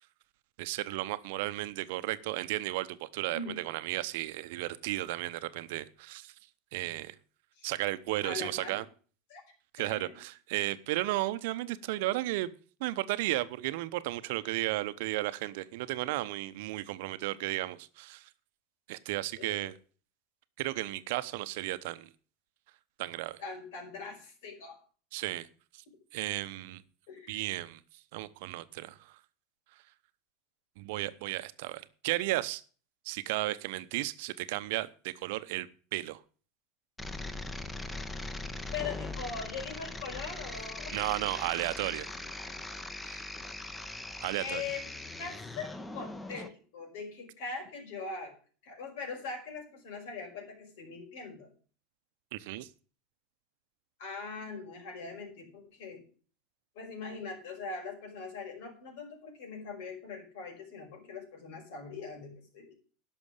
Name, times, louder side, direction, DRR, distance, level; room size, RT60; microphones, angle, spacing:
voice 1, 0.6-6.3 6.7-7.1 7.6-8.8 9.7-12.5 12.8-18.3 18.9-19.7 20.6-22.1 23.0-23.4 25.1-25.5 25.7-25.8 26.1-26.8 27.3-27.8 28.1-29.2 30.8-32.6 33.0-36.2 40.9-42.1 43.0-43.2 44.2-44.6 52.3-52.7, right 17 dB, 65° right, 0.8 m, -34 dB
voice 2, 8.2-8.8 9.3-9.4 9.8-10.2 19.4-19.7 23.4-24.8 27.1-27.4 38.7-41.0 44.4-44.9 45.2-48.3 48.6-51.5 54.0-56.0 56.8-62.7, left 4 dB, 65° left, 5.3 m, -41 dB
sound 1, 37.0-46.5, left 2 dB, 15° left, 1.4 m, -40 dB
11.5 x 6.3 x 8.3 m
hypercardioid pair, 85°, 0 cm